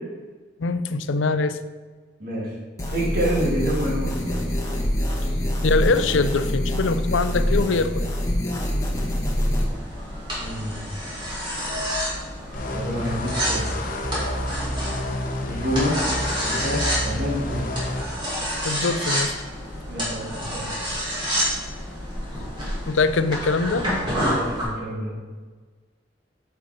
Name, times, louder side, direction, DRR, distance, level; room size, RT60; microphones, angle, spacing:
voice 1, 0.6-1.6 5.6-8.2 18.6-19.3 22.9-23.9, left 3 dB, 90° left, 12 dB, 0.5 m, -23 dB
sound 1, 2.8-9.7, equal, 15° left, 1.2 m, -25 dB
voice 2, 2.8-4.4 10.4-10.9 12.7-13.7 15.5-16.0 16.4-17.7 19.9-20.8 24.1-25.1, equal, 50° right, -4 dB, 2.4 m, -28 dB
sound 2, 9.6-24.6, equal, 25° right, 2.3 m, -29 dB
sound 3, 12.5-18.0, left 1 dB, 45° left, 0.9 m, -29 dB
8.0 x 5.7 x 5.0 m, 1.4 s
head